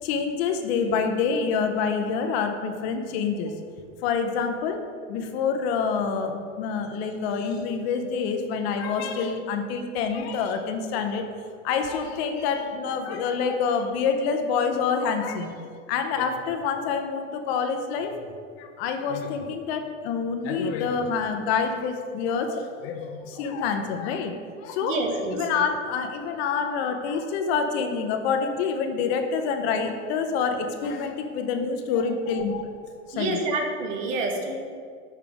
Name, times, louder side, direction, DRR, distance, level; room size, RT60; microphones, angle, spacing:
voice 1, 0.0-3.5 4.0-11.3 11.6-18.2 18.6-24.3 24.6-25.0 25.3-32.7 33.1-33.4, left 5 dB, 55° left, 6 dB, 0.8 m, -27 dB
voice 2, 24.8-25.6 33.1-34.5, right 2 dB, 80° right, 3 dB, 1.3 m, -28 dB
6.8 x 5.8 x 3.5 m, 2.1 s
supercardioid pair, 125°, 38 cm